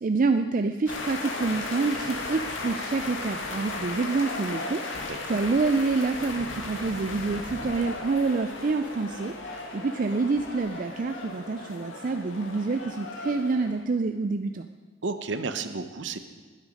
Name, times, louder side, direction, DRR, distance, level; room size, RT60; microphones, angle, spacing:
voice 1, 0.0-14.7, right 3 dB, 40° right, 7 dB, 0.4 m, -27 dB
sound 1, 0.9-13.8, left 2 dB, 70° left, 1.9 m, -36 dB
voice 2, 5.1-5.4 15.0-16.2, right 4 dB, 65° right, 9 dB, 0.9 m, -32 dB
20.0 x 8.2 x 5.2 m, 1.4 s
head